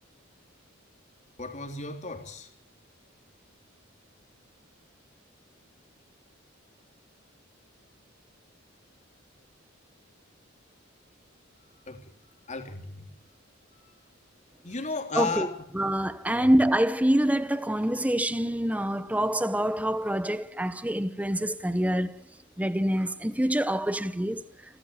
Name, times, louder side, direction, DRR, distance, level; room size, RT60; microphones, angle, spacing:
voice 1, 1.4-2.5 11.9-12.0 12.5-13.1 13.7-13.8 14.6-15.6 16.3-16.5, left 4 dB, 35° left, 3.5 m, -34 dB
voice 2, 15.1-15.5 15.7-22.2 22.6-24.4, right 1 dB, 5° right, 0.9 m, -26 dB
29.5 x 13.5 x 7.4 m
head